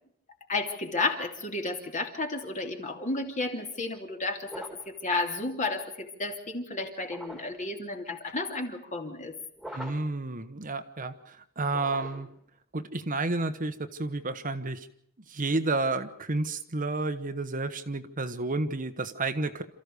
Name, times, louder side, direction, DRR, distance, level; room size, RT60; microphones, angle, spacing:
voice 1, 0.5-9.3, left 2 dB, 35° left, 4 dB, 3.0 m, -32 dB
sound 1, 4.5-5.0 7.0-7.7 9.6-10.2 11.7-12.4, equal, ahead, 2.5 m, -43 dB
voice 2, 9.7-12.3 12.7-14.9 15.3-19.6, right 2 dB, 40° right, 9 dB, 1.2 m, -31 dB
28.0 x 14.5 x 6.8 m, 0.70 s
head